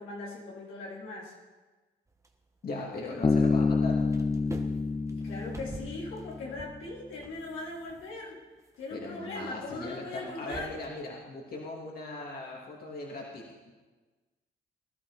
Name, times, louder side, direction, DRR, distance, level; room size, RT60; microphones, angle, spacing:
voice 1, 0.0-1.3 5.1-8.4 8.8-10.8, left 2 dB, 80° left, -4 dB, 3.8 m, -40 dB
sound 1, 2.1-3.6 3.9-10.9, right 2 dB, 15° right, 1.5 m, -48 dB
voice 2, 2.6-4.0 8.9-13.7, left 2 dB, 50° left, -2 dB, 3.0 m, -39 dB
Bass guitar, 3.2-6.7, left 4 dB, 20° left, 0.5 m, -28 dB
19.5 x 11.5 x 4.3 m, 1.3 s
cardioid pair, 90°, 20 cm